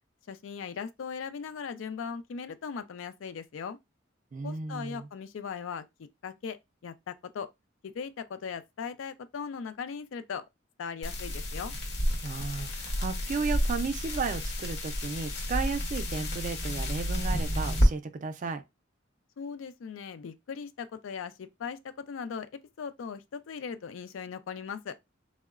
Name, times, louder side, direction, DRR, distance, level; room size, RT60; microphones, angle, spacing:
voice 1, 0.3-3.8 4.4-5.8 6.2-6.6 6.8-7.5 7.8-10.4 10.8-11.7 19.4-22.5 22.8-25.0, left 6 dB, 80° left, 0.4 m, -38 dB
voice 2, 4.3-5.1 12.2-18.6, right 4 dB, 40° right, 0.4 m, -34 dB
sound 1, 11.0-17.9, equal, 55° left, 0.8 m, -30 dB
3.7 x 2.0 x 2.3 m
head